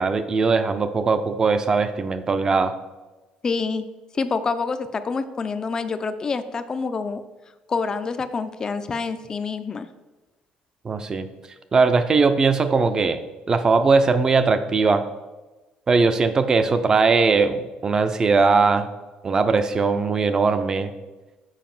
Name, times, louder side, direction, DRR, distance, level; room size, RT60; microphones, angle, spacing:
voice 1, 0.0-2.7 10.8-11.3 11.7-13.2 13.5-15.1 15.9-18.9 19.2-20.9, right 4 dB, 25° right, 10 dB, 0.5 m, -20 dB
voice 2, 3.4-3.9 4.1-7.2 7.7-9.9, left 4 dB, 25° left, 11 dB, 0.5 m, -27 dB
7.3 x 4.8 x 5.9 m, 1.1 s
cardioid pair, 150°, 3 cm